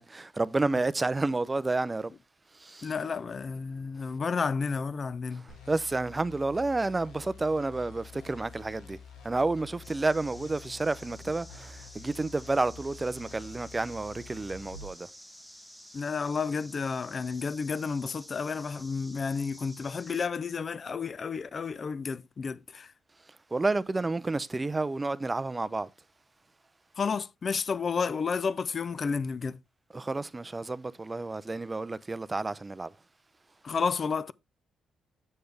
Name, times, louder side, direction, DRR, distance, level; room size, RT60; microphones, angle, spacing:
voice 1, 0.0-2.1 2.5-2.9 5.3-9.0 9.2-15.1 23.5-25.9 29.9-32.9, right 3 dB, 20° right, 0.4 m, -30 dB
voice 2, 2.8-5.4 15.9-22.9 27.0-29.6 33.6-34.3, left 5 dB, 40° left, 0.4 m, -31 dB
sound 1, 5.5-14.9, left 4 dB, 90° left, 1.7 m, -48 dB
sound 2, 9.8-20.3, equal, ahead, 0.9 m, -51 dB
6.8 x 6.5 x 3.3 m
cardioid pair, 90°, 0 cm